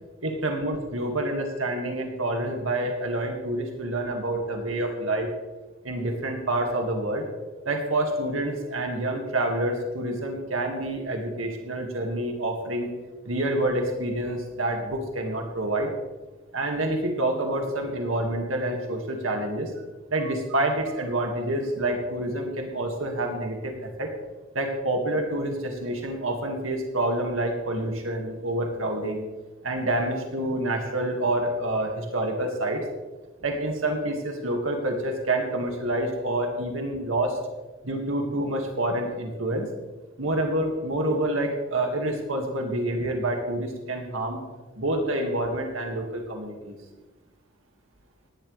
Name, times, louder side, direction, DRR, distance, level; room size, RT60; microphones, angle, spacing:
voice 1, 0.2-5.3 5.8-7.3 7.7-12.9 13.2-15.9 16.5-19.8 20.1-24.1 24.5-29.3 29.6-32.8 33.4-37.4 37.8-39.7 40.2-44.4 44.8-46.8, right 1 dB, 85° right, 2 dB, 2.2 m, -27 dB
17.0 x 12.0 x 3.4 m, 1.2 s
head